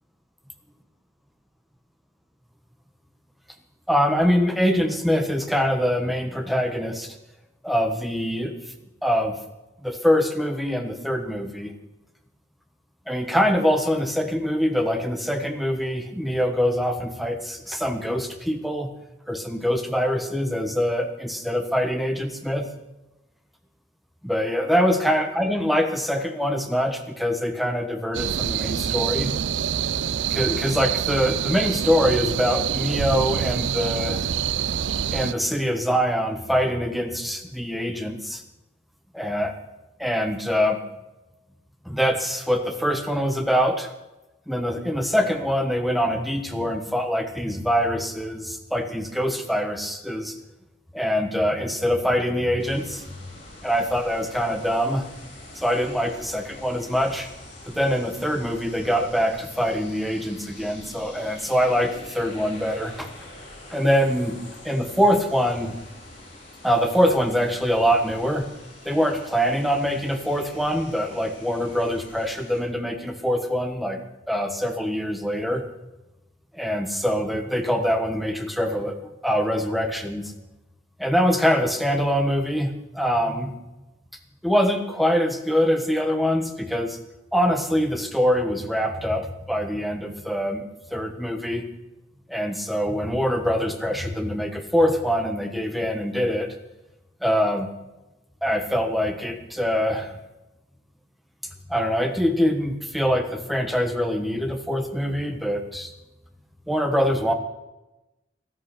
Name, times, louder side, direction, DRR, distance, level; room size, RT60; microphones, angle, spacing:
voice 1, 3.9-7.1 7.6-8.5 9.0-9.4 9.8-11.7 13.1-18.9 19.3-22.7 24.2-29.3 30.3-34.2 35.1-38.4 39.1-39.5 40.0-40.8 41.8-43.9 44.5-50.3 50.9-53.0 53.6-55.1 55.5-57.3 57.7-63.1 63.7-64.4 64.6-65.8 66.6-68.5 68.8-74.0 74.3-75.6 76.5-80.3 81.0-83.6 84.4-87.0 87.3-90.6 90.9-91.7 92.3-96.5 97.2-97.7 98.4-100.2 101.7-105.9 106.7-107.3, equal, ahead, 6 dB, 1.3 m, -24 dB
sound 1, 28.1-35.3, right 8 dB, 80° right, 0.5 m, -26 dB
sound 2, 52.6-72.6, left 1 dB, 35° left, 4.9 m, -45 dB
13.5 x 13.0 x 6.0 m, 0.99 s
head